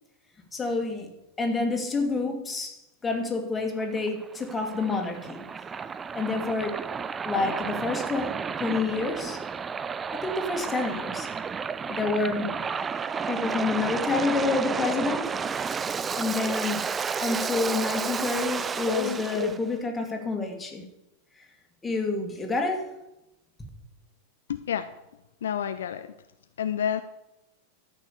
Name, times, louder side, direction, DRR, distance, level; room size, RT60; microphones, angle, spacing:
voice 1, 0.5-5.5 6.1-6.8 7.2-9.4 10.1-11.3 11.9-12.6 13.3-15.4 16.1-16.9 17.2-20.9 21.8-22.9, left 3 dB, 15° left, 2 dB, 2.3 m, -28 dB
Waves surf, 3.8-19.6, right 6 dB, 20° right, 0.4 m, -32 dB
voice 2, 18.9-19.5 24.5-24.9 25.4-26.1 26.6-27.0, left 9 dB, 65° left, 10 dB, 0.5 m, -29 dB
12.5 x 6.3 x 6.9 m, 0.91 s
figure-of-eight pair, 90°, 0 cm